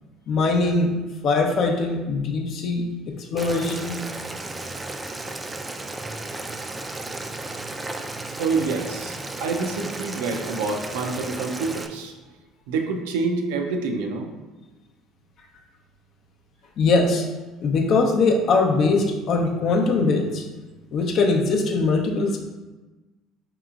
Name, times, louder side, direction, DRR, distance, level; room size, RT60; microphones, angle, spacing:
voice 1, 0.3-0.9 1.2-4.0 4.6-4.7 16.8-17.3 17.6-20.4 20.9-22.4, left 3 dB, 55° left, 1 dB, 0.6 m, -21 dB
Boiling, 3.4-11.9, right 2 dB, 20° right, 0.3 m, -34 dB
voice 2, 8.4-12.2 12.7-14.3, right 4 dB, 75° right, 3 dB, 0.5 m, -27 dB
4.8 x 2.9 x 2.4 m, 1.2 s
hypercardioid pair, 70°, 0 cm